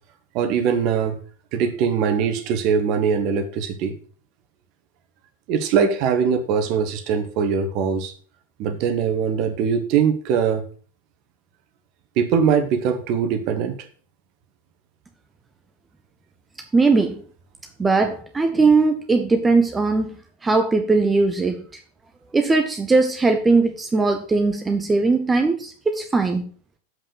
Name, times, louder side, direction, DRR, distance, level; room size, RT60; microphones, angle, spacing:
voice 1, 0.3-1.2 1.5-3.9 5.5-8.1 8.6-10.6 12.2-13.8, right 6 dB, 40° right, 8 dB, 1.5 m, -21 dB
voice 2, 16.7-17.2 17.8-20.2 20.4-21.7 22.3-26.5, right 3 dB, 15° right, 6 dB, 0.9 m, -19 dB
7.6 x 5.7 x 6.6 m, 0.41 s
figure-of-eight pair, 90°, 0 cm